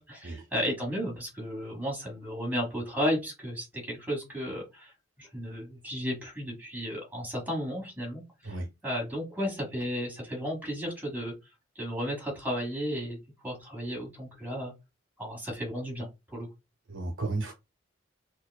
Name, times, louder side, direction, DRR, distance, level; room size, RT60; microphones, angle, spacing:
voice 1, 0.0-11.3 11.7-13.2 13.4-14.7 15.2-16.5, equal, 10° right, 1.3 m, -34 dB
voice 2, 16.9-17.5, right 2 dB, 75° right, 0.7 m, -33 dB
4.4 x 2.3 x 2.3 m
head